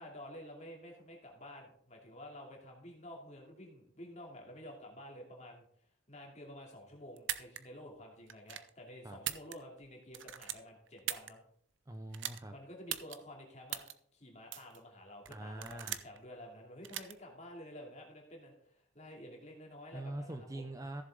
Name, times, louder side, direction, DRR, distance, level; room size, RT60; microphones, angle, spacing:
voice 1, 0.0-5.7 6.1-11.4 12.5-13.8 14.1-20.7, left 1 dB, 35° left, 0 dB, 2.6 m, -51 dB
sound 1, 7.2-7.6 8.3-8.7 9.1-9.8 10.1-11.3 12.1-12.4 12.9-13.2 13.7-13.9 14.5-14.8 15.3-16.2 16.8-17.1, right 12 dB, 60° right, 0.6 m, -39 dB
voice 2, 11.9-12.5 15.3-16.0 19.9-21.0, right 1 dB, 15° right, 6 dB, 0.5 m, -43 dB
14.5 x 7.3 x 3.8 m, 0.64 s
head